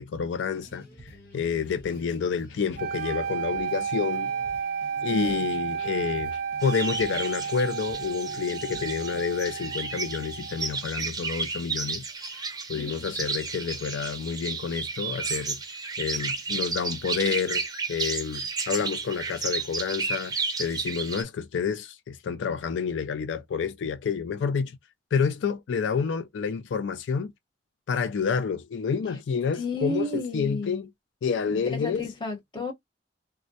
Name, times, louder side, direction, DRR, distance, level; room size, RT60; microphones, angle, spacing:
voice 1, 0.0-4.3 5.0-12.1 12.7-15.6 16.0-17.6 17.9-20.3 20.6-24.8 25.1-27.3 27.9-30.9 31.2-32.0, left 6 dB, 80° left, 0.4 m, -29 dB
sound 1, 0.5-9.4, equal, 55° left, 1.3 m, -50 dB
sound 2, 2.8-10.8, right 6 dB, 50° right, 0.3 m, -32 dB
voice 2, 5.1-5.7 12.7-13.1 29.6-30.8 31.5-32.7, left 2 dB, 25° left, 0.9 m, -33 dB
sound 3, 6.6-21.2, right 4 dB, 20° right, 0.7 m, -33 dB
3.5 x 2.1 x 2.6 m
head